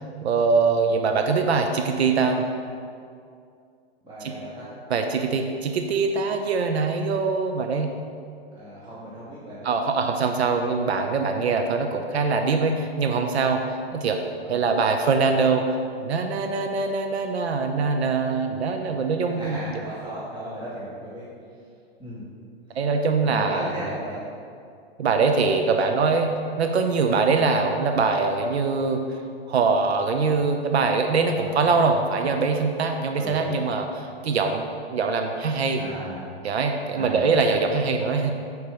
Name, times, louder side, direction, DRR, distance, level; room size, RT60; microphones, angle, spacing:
voice 1, 0.2-2.5 4.2-4.3 4.9-7.9 9.6-14.2 14.5-15.7 16.0-19.8 22.7-23.9 25.0-29.0 29.5-35.8 36.4-38.3, right 4 dB, 85° right, 5 dB, 0.7 m, -23 dB
voice 2, 4.0-4.7 8.5-9.7 14.4-14.7 19.3-21.3 22.0-22.3 23.2-24.2 31.4-31.7 33.2-33.7 35.8-36.3 36.9-37.3, right 1 dB, 15° right, -9 dB, 1.6 m, -36 dB
6.8 x 4.7 x 4.9 m, 2.3 s
hypercardioid pair, 130°, 32 cm